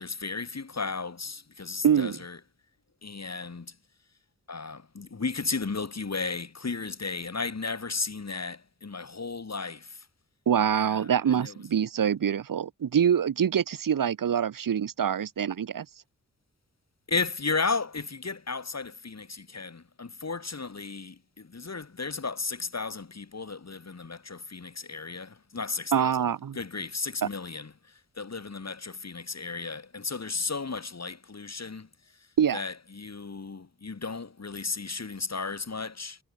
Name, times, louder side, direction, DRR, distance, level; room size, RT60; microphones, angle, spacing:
voice 1, 0.0-2.4 3.0-3.7 4.5-10.1 10.8-11.6 17.1-26.2 26.5-27.7 28.2-31.9 32.5-36.2, left 4 dB, 55° left, 5.8 m, -34 dB
voice 2, 1.8-2.2 10.5-15.8 25.9-26.6 27.2-27.3 32.4-32.6, right 8 dB, 85° right, 1.4 m, -25 dB
cardioid pair, 50°, 33 cm